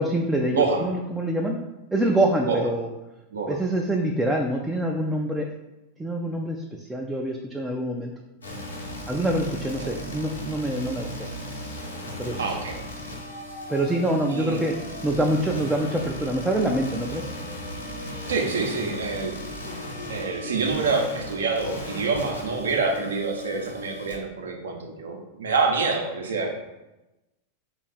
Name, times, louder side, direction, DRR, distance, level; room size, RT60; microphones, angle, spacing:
voice 1, 0.0-1.6 1.9-2.9 3.5-5.5 6.0-8.1 8.8-11.3 12.2-12.6 13.7-14.7 15.0-17.3, right 1 dB, 10° right, 0 dB, 0.3 m, -25 dB
voice 2, 0.5-0.8 2.5-2.6 3.3-3.6 9.8-9.9 12.4-12.8 14.3-14.6 18.3-19.3 20.1-26.5, right 4 dB, 65° right, 2 dB, 0.6 m, -26 dB
sound 1, 8.4-24.2, left 1 dB, 75° left, 0.9 m, -36 dB
3.2 x 2.3 x 4.1 m, 1.0 s
figure-of-eight pair, 90°, 0 cm